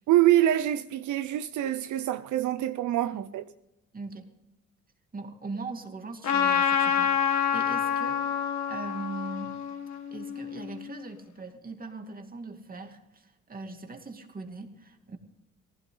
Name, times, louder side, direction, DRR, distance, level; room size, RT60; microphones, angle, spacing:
voice 1, 0.1-3.4, right 13 dB, 75° right, 0.7 m, -25 dB
voice 2, 3.9-4.3 5.1-8.2 8.7-9.6 10.1-15.2, right 3 dB, 30° right, 2.6 m, -40 dB
Trumpet, 6.2-10.9, left 8 dB, 65° left, 2.1 m, -27 dB
18.5 x 16.0 x 3.9 m
cardioid pair, 90°, 30 cm